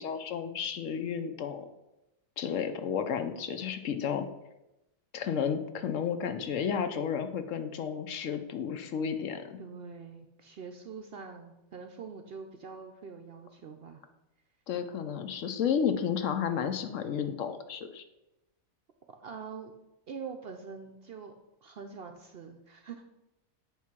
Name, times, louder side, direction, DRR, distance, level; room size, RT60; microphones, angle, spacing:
voice 1, 0.0-1.7 2.4-4.3 5.1-9.6 14.7-18.0, left 7 dB, 70° left, 8 dB, 1.0 m, -32 dB
voice 2, 9.6-14.0 19.1-19.7 20.1-21.3 21.6-23.0, right 5 dB, 60° right, 5 dB, 0.7 m, -44 dB
9.0 x 3.1 x 5.9 m, 0.94 s
omnidirectional pair, 1.5 m